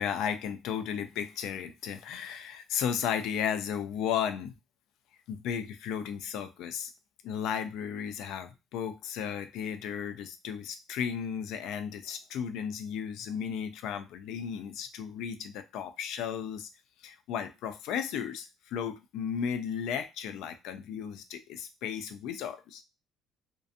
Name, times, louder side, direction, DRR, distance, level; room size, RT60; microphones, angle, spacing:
voice 1, 0.0-4.5 5.3-6.9 7.2-16.7 17.0-22.8, left 8 dB, 70° left, 8 dB, 0.3 m, -34 dB
2.5 x 2.2 x 2.4 m, 0.26 s
cardioid pair, 180°, 0 cm